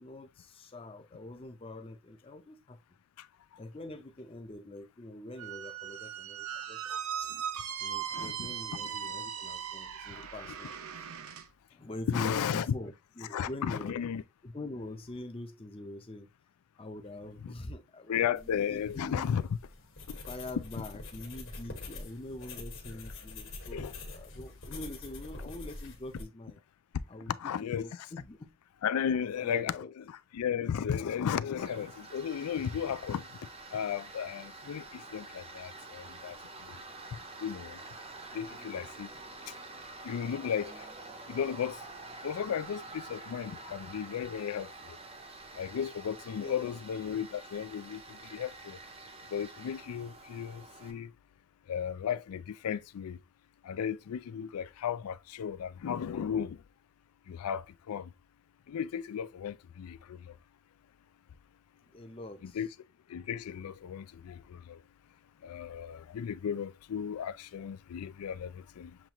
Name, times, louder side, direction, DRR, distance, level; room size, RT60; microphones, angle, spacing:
voice 1, 0.0-2.8 3.6-7.3 7.8-10.7 11.7-14.0 14.4-16.3 16.8-19.3 20.3-26.6 27.1-27.3 27.7-28.5 29.1-29.9 46.4-46.8 61.8-62.6, left 1 dB, 25° left, 0.5 m, -44 dB
Squeak, 5.4-11.5, right 8 dB, 75° right, 0.6 m, -38 dB
voice 2, 8.1-8.8 12.1-12.7 13.3-14.2 17.4-17.5 18.1-19.4 20.1-20.2 23.7-23.9 27.4-27.8 28.8-33.3 33.7-36.4 36.7-36.8 37.4-37.8 38.3-39.1 40.0-40.9 41.3-41.8 42.2-45.0 45.6-48.8 49.3-51.1 51.7-53.2 53.6-56.6 57.3-58.1 58.7-60.3 62.4-62.7 63.1-64.8 65.4-69.0, left 8 dB, 85° left, 0.4 m, -35 dB
sound 1, 18.3-26.2, left 2 dB, 55° left, 1.4 m, -45 dB
Tools, 31.6-50.9, right 2 dB, 25° right, 0.5 m, -48 dB
7.2 x 2.4 x 3.0 m
head